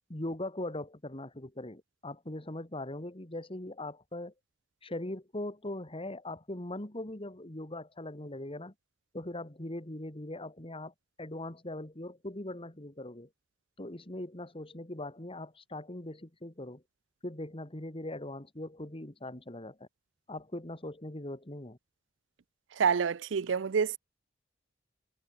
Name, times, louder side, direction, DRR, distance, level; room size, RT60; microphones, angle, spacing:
voice 1, 0.1-4.3 4.8-8.7 9.1-13.3 13.8-16.8 17.2-19.9 20.3-21.8, left 1 dB, 30° left, 2.4 m, -40 dB
voice 2, 22.8-24.0, right 6 dB, 75° right, 0.5 m, -27 dB
head